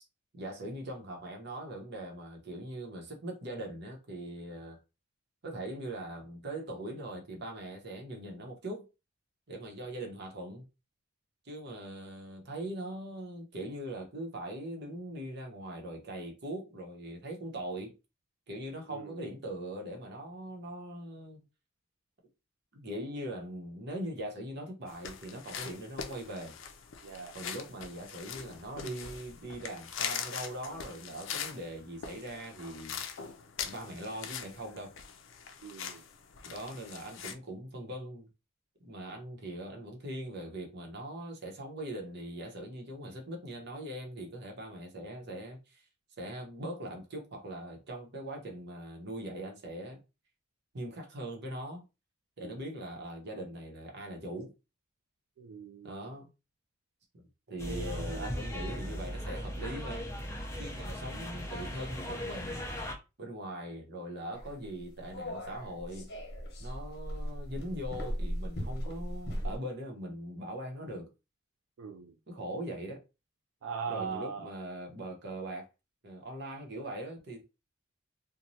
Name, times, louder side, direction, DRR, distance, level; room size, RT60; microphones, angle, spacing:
voice 1, 0.3-4.8 5.4-8.9 9.5-10.6 11.4-17.9 18.5-21.4 22.7-26.6 27.3-33.0 33.6-34.9 36.4-38.3 38.8-45.8 46.2-50.0 50.7-51.8 52.4-54.5 55.8-56.3 57.5-60.1 60.6-62.6 63.2-66.1 66.6-71.1 72.3-73.0 73.9-75.7 76.0-77.4, right 1 dB, 55° right, 0.8 m, -41 dB
sound 1, 24.9-37.3, left 7 dB, 75° left, 0.4 m, -42 dB
voice 2, 27.0-27.4 35.6-36.0 52.4-52.6 55.4-56.1 57.7-58.3 71.8-72.1 73.6-74.5, right 5 dB, 85° right, 0.3 m, -40 dB
sound 2, 57.6-62.9, equal, 15° left, 0.5 m, -38 dB
sound 3, 64.3-69.6, equal, 55° left, 0.9 m, -38 dB
3.0 x 2.2 x 2.6 m
head